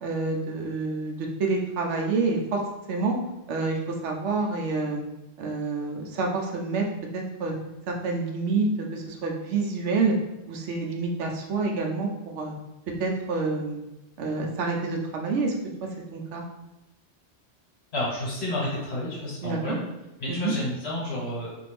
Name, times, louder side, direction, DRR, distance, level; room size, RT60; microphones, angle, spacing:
voice 1, 0.0-2.6 2.9-3.2 3.5-5.0 5.4-6.8 7.1-7.5 7.9-10.1 10.5-12.6 13.0-13.8 14.2-15.5 15.8-16.4 19.4-19.6 20.3-20.5, right 3 dB, 80° right, 0 dB, 0.9 m, -28 dB
voice 2, 17.9-19.8 20.2-21.5, left 1 dB, 65° left, -6 dB, 1.4 m, -30 dB
2.6 x 2.5 x 3.3 m, 0.98 s
omnidirectional pair, 1.2 m